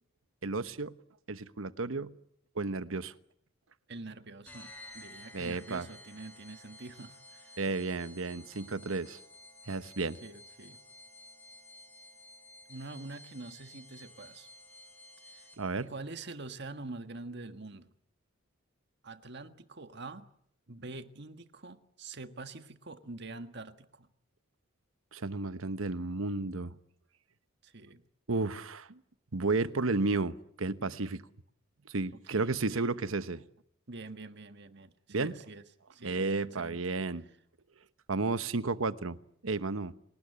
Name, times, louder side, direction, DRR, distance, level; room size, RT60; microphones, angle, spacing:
voice 1, 0.4-0.9 1.3-2.1 2.5-3.1 5.3-5.9 7.6-9.2 9.7-10.2 15.6-15.9 25.1-26.7 28.3-29.0 29.3-31.2 31.9-33.4 35.1-35.3 36.0-37.3 38.1-39.2 39.4-39.9, right 3 dB, 70° right, 1.1 m, -32 dB
voice 2, 3.9-7.6 10.0-10.8 12.7-14.5 15.2-15.5 15.8-17.9 19.0-20.2 20.7-24.1 27.6-28.0 32.1-33.0 33.9-35.6 35.9-36.8, right 3 dB, 55° right, 1.6 m, -45 dB
sound 1, 4.4-15.8, left 1 dB, 5° left, 5.9 m, -53 dB
30.0 x 19.5 x 9.8 m
head